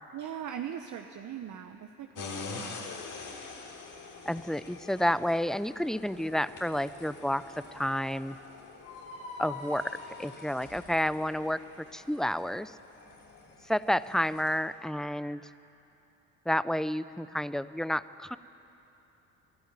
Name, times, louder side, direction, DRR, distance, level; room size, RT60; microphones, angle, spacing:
voice 1, 0.1-2.9, right 9 dB, 55° right, 6 dB, 1.0 m, -40 dB
sound 1, 2.1-14.6, left 4 dB, 55° left, 3.7 m, -46 dB
voice 2, 4.3-7.4 7.7-8.4 9.4-9.9 10.2-12.7 13.6-15.4 16.5-18.4, equal, ahead, 15 dB, 0.5 m, -30 dB
sound 2, 8.8-12.0, left 3 dB, 85° left, 6.2 m, -45 dB
21.5 x 12.5 x 9.6 m, 3.0 s
hypercardioid pair, 60°, 36 cm